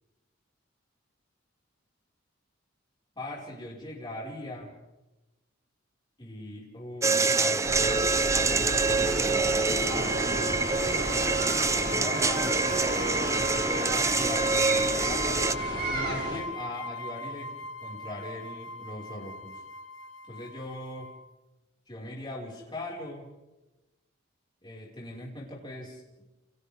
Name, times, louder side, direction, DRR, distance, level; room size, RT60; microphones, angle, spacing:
voice 1, 3.2-4.7 6.2-8.8 11.9-17.5 17.8-19.6 20.3-21.1 21.9-23.3 24.6-26.3, left 1 dB, 20° left, -4 dB, 5.5 m, -40 dB
sound 1, 7.0-15.5, right 3 dB, 15° right, 0.7 m, -26 dB
sound 2, 7.6-16.4, right 1 dB, 55° right, 7.9 m, -33 dB
sound 3, 9.9-21.3, left 1 dB, 65° left, 1.3 m, -38 dB
29.5 x 29.0 x 3.7 m, 1.1 s
head